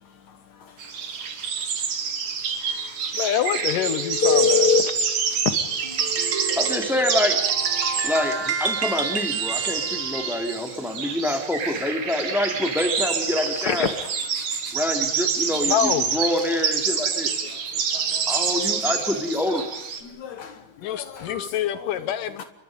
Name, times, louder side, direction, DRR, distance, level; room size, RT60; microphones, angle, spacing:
voice 1, 0.0-1.3 1.6-1.7 2.3-2.7 3.1-3.2 3.9-6.1 10.5-11.1 14.3-14.6 16.5-18.8 19.1-19.6 20.0-22.1 22.4-22.5, left 9 dB, 65° left, 2.5 m, -42 dB
sound 1, 0.8-20.0, right 6 dB, 80° right, 4.4 m, -27 dB
voice 2, 3.1-5.0 15.5-16.2 17.9-18.1 20.8-22.4, left 10 dB, 80° left, 2.7 m, -27 dB
Telephone, 4.2-4.9 5.4-5.5 7.3-7.4 7.9-8.0 13.3-14.2 21.3-21.5, left 5 dB, 50° left, 1.3 m, -22 dB
sound 2, 5.8-10.6, right 6 dB, 45° right, 2.3 m, -30 dB
voice 3, 6.6-7.4 8.0-14.0 14.7-17.3 18.3-19.7, left 1 dB, ahead, 3.0 m, -26 dB
29.0 x 23.0 x 5.3 m
omnidirectional pair, 3.8 m